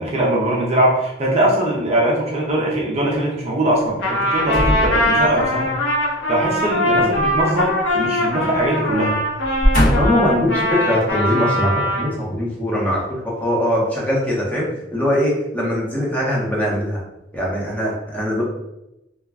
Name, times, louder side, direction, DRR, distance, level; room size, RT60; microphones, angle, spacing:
voice 1, 0.0-5.7 6.3-9.2, right 1 dB, 35° right, -3 dB, 0.5 m, -21 dB
Trumpet, 4.0-12.1, left 1 dB, 70° left, 0.8 m, -21 dB
sound 1, 4.4-5.6 7.2-8.3 8.6-8.8 9.4-10.3 11.0-11.1, equal, 45° left, 0.9 m, -21 dB
voice 2, 10.0-17.0 17.3-18.4, equal, 10° left, -5 dB, 0.7 m, -21 dB
2.3 x 2.1 x 3.4 m, 0.90 s
head